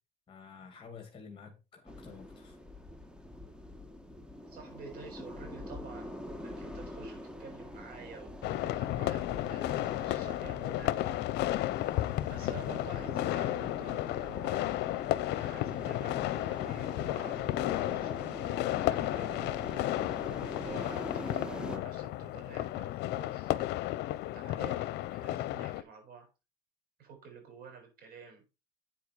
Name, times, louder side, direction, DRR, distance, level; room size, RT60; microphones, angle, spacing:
voice 1, 0.3-2.6, left 5 dB, 30° left, 4 dB, 2.4 m, -50 dB
sound 1, 1.9-21.8, left 1 dB, 5° right, 1.6 m, -45 dB
voice 2, 4.3-11.7 12.3-14.6 15.3-18.3 18.6-19.9 20.6-23.8 24.3-26.3 27.0-28.4, right 5 dB, 60° right, 3 dB, 6.6 m, -50 dB
sound 2, 8.4-25.8, left 15 dB, 80° left, 0.6 m, -33 dB
8.5 x 7.2 x 4.7 m, 0.28 s
cardioid pair, 110°, 17 cm